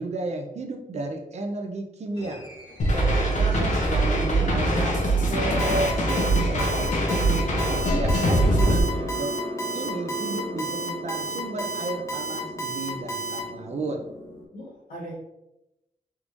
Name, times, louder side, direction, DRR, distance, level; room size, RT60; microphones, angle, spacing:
voice 1, 0.0-2.4 2.9-5.0 5.3-7.1 7.9-8.4 8.7-8.8 9.1-9.3 9.7-14.0, right 2 dB, 50° right, 4 dB, 0.5 m, -33 dB
sound 1, 2.2-14.5, equal, 40° left, 1.2 m, -37 dB
sound 2, 2.8-8.8, right 1 dB, 60° left, 0.8 m, -23 dB
voice 2, 4.0-4.5 8.2-9.1 14.5-15.1, equal, 75° left, -7 dB, 1.5 m, -36 dB
Alarm, 5.6-13.4, right 3 dB, 20° left, 0.7 m, -32 dB
3.5 x 3.1 x 2.6 m, 0.89 s
wide cardioid pair, 170°, 15 cm